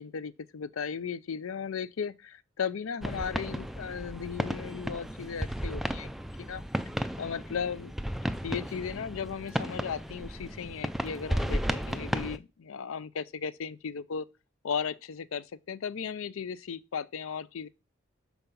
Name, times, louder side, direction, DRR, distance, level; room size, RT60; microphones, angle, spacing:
voice 1, 0.0-6.1 6.4-6.6 7.2-7.9 8.4-14.3 14.6-17.7, left 6 dB, 70° left, 0.5 m, -36 dB
sound 1, 3.0-12.4, equal, ahead, 0.3 m, -34 dB
7.1 x 4.6 x 5.4 m
head